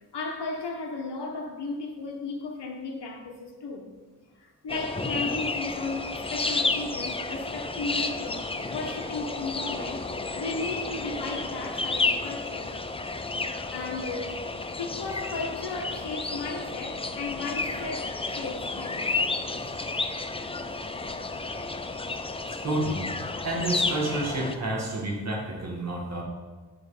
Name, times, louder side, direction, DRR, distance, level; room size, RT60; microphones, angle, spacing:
voice 1, 0.1-3.9 4.4-10.0 10.4-12.7 13.7-14.4 14.7-19.2, left 3 dB, 80° left, 1.2 m, -35 dB
sound 1, 4.7-24.5, left 3 dB, 15° left, 0.3 m, -31 dB
voice 2, 22.6-23.0 23.4-26.2, right 1 dB, 40° right, 1.8 m, -29 dB
9.7 x 4.8 x 5.0 m
wide cardioid pair, 165°, 40 cm